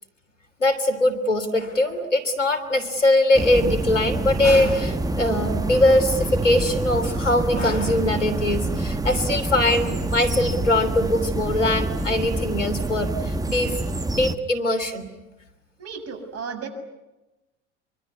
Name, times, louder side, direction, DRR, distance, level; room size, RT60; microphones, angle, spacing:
voice 1, 0.6-13.8 14.1-15.1, left 1 dB, 90° left, 10 dB, 3.3 m, -21 dB
sound 1, 3.3-14.4, right 2 dB, 10° right, 1.2 m, -27 dB
Bass guitar, 7.7-11.4, right 4 dB, 60° right, 7.2 m, -40 dB
voice 2, 15.8-16.7, right 6 dB, 45° right, 6 dB, 7.4 m, -34 dB
25.0 x 23.5 x 9.8 m, 1.0 s
figure-of-eight pair, 75°, 36 cm